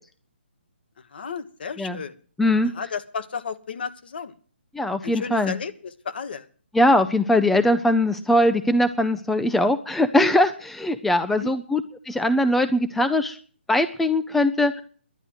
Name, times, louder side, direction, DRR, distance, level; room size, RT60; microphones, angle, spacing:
voice 1, 1.1-2.2 2.7-4.3 5.0-6.5 11.3-11.5, left 6 dB, 60° left, 9 dB, 1.4 m, -33 dB
voice 2, 2.4-2.7 4.7-5.5 6.7-13.4 13.7-14.8, left 1 dB, 5° left, 10 dB, 0.5 m, -21 dB
11.0 x 9.9 x 7.9 m, 0.43 s
figure-of-eight pair, 140°, 6 cm